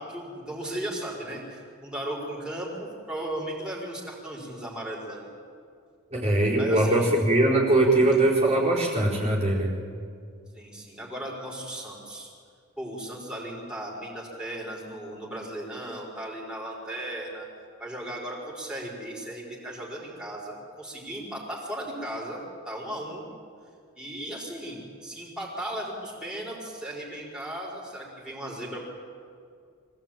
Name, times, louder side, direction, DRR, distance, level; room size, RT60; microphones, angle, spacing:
voice 1, 0.0-5.3 6.6-7.1 10.5-12.3 12.8-17.5 17.8-22.4 22.6-23.2 24.0-28.9, right 1 dB, 5° right, -3 dB, 5.0 m, -36 dB
voice 2, 6.1-9.7, right 2 dB, 30° right, -6 dB, 4.5 m, -21 dB
24.5 x 17.5 x 9.2 m, 2.2 s
head